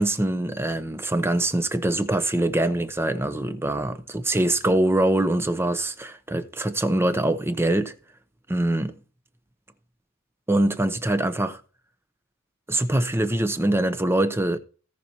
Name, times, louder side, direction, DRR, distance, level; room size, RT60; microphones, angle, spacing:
voice 1, 0.0-7.9 8.5-8.9 10.5-11.6 12.7-14.6, right 1 dB, 10° right, 0.7 m, -23 dB
17.5 x 5.9 x 2.9 m
head